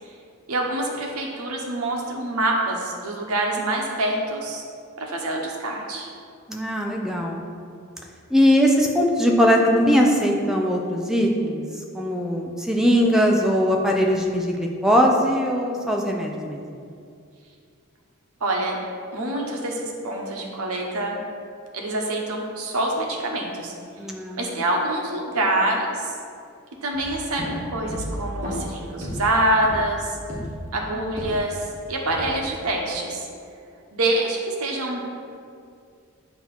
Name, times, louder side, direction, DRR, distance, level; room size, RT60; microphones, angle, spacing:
voice 1, 0.5-4.6 5.0-6.1 18.4-18.8 19.1-21.2 21.7-23.7 24.4-26.1 26.8-30.2 30.7-33.2 33.9-35.0, right 1 dB, 85° right, -1 dB, 0.9 m, -26 dB
voice 2, 6.5-7.4 8.3-11.6 11.9-16.6 24.0-24.4, equal, ahead, 0 dB, 0.5 m, -20 dB
sound 1, 26.9-31.7 32.1-32.6, equal, 35° right, 1.4 m, -34 dB
7.5 x 2.9 x 5.7 m, 2.4 s
head